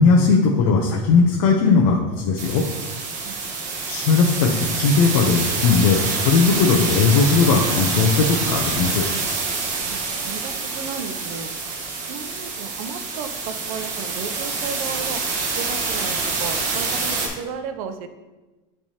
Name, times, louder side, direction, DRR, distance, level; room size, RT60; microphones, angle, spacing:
voice 1, 0.0-2.6 3.9-9.0, left 4 dB, 75° left, 0 dB, 0.7 m, -18 dB
sound 1, 2.4-17.3, right 4 dB, 40° right, 1.2 m, -26 dB
voice 2, 3.2-3.6 9.8-11.5 12.1-15.2 15.6-18.1, right 6 dB, 80° right, 8 dB, 0.6 m, -34 dB
10.0 x 3.4 x 2.9 m, 1.2 s
cardioid pair, 170°, 18 cm